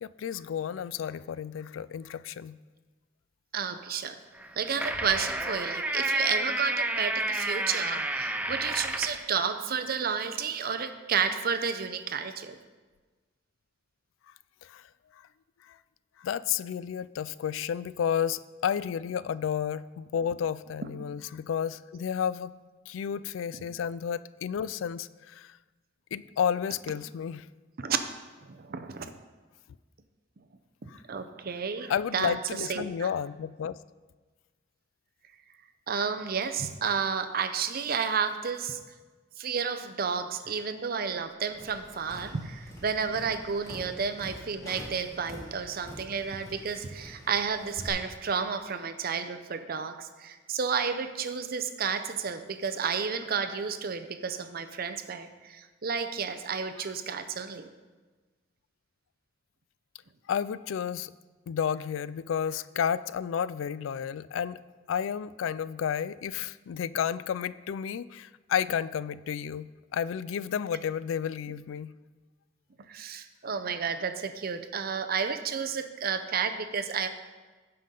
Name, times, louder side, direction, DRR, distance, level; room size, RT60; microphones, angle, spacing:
voice 1, 0.0-2.6 14.6-14.8 15.7-15.8 16.2-22.5 22.9-25.6 26.1-27.5 30.9-31.0 31.9-33.8 60.3-61.1 61.5-64.6 64.9-71.9, left 8 dB, 90° left, 17 dB, 0.3 m, -31 dB
voice 2, 3.5-4.2 4.6-12.5 23.5-23.6 27.8-28.0 28.4-29.1 30.8-32.3 32.7-33.1 35.9-38.8 39.4-57.7 72.9-77.1, right 6 dB, 50° right, 8 dB, 0.6 m, -31 dB
sound 1, 4.4-9.2, right 2 dB, 10° right, 0.4 m, -30 dB
Tap, 41.5-47.9, equal, 20° left, 2.7 m, -46 dB
16.0 x 5.6 x 3.8 m, 1.3 s
head